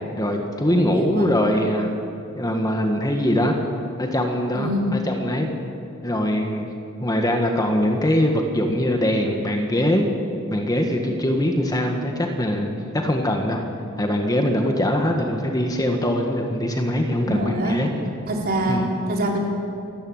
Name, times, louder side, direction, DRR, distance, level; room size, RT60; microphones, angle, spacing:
voice 1, 0.0-1.9 2.3-3.6 4.0-5.5 6.0-6.7 7.0-10.1 10.5-13.6 14.0-17.9 18.7-18.8, left 1 dB, 15° left, 3 dB, 1.8 m, -22 dB
voice 2, 0.7-1.3 4.5-5.0 17.2-17.8 18.3-19.4, right 1 dB, 45° right, 0 dB, 3.9 m, -25 dB
28.5 x 13.5 x 9.0 m, 2.6 s
head